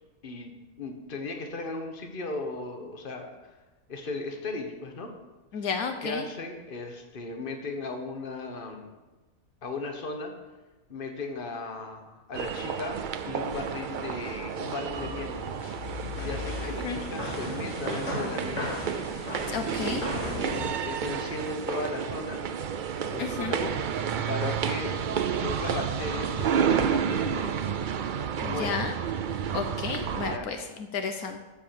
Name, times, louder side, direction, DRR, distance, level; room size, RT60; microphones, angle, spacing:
voice 1, 0.8-3.5 3.9-5.1 5.6-5.7 6.0-8.9 9.6-10.3 10.9-13.0 13.3-15.4 16.2-18.7 19.8-22.4 22.9-24.9 25.4-27.5 28.4-28.8 30.2-30.5, left 3 dB, 40° left, 4 dB, 1.4 m, -36 dB
voice 2, 5.5-6.2 16.8-17.0 19.5-20.0 23.2-23.5 28.4-28.9 29.5-31.4, left 5 dB, 75° left, 6 dB, 1.3 m, -32 dB
sound 1, 12.3-30.4, right 7 dB, 85° right, 0.4 m, -31 dB
sound 2, 14.9-20.7, left 2 dB, 55° left, 2.6 m, -36 dB
13.5 x 4.7 x 7.1 m, 1.2 s
omnidirectional pair, 1.6 m